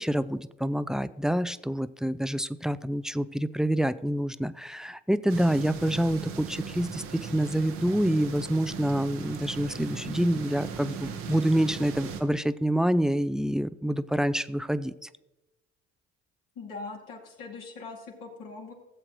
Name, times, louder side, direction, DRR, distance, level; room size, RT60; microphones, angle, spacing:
voice 1, 0.0-14.9, right 1 dB, ahead, 15 dB, 0.4 m, -27 dB
sound 1, 5.3-12.2, right 6 dB, 85° right, 1.1 m, -38 dB
voice 2, 16.6-18.7, left 3 dB, 70° left, -3 dB, 2.6 m, -41 dB
15.5 x 7.6 x 3.1 m, 0.99 s
hypercardioid pair, 50°, 33 cm